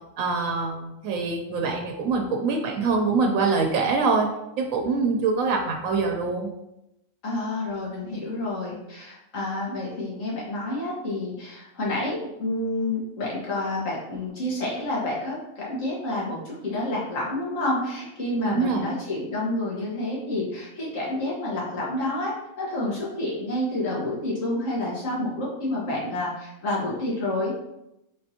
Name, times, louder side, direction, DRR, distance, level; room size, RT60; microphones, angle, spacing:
voice 1, 0.2-4.3 4.6-6.5 18.5-18.8, right 4 dB, 90° right, 2 dB, 1.0 m, -24 dB
voice 2, 7.2-27.5, left 1 dB, 75° left, -5 dB, 1.7 m, -29 dB
4.3 x 3.8 x 2.7 m, 0.87 s
omnidirectional pair, 1.4 m